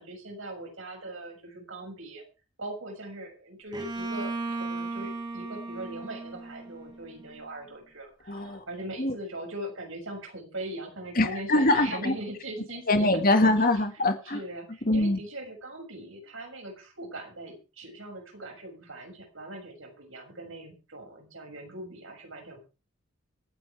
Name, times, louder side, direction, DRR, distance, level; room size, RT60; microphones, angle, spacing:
voice 1, 0.0-2.2 2.6-13.1 13.4-13.6 14.2-22.6, right 1 dB, 70° right, 6.7 m, -40 dB
Bowed string instrument, 3.7-7.5, right 3 dB, 20° right, 2.5 m, -36 dB
voice 2, 8.3-8.6 9.0-9.1 11.2-12.1 12.9-14.4 14.9-15.2, left 2 dB, 40° left, 1.9 m, -23 dB
25.5 x 9.6 x 3.5 m
head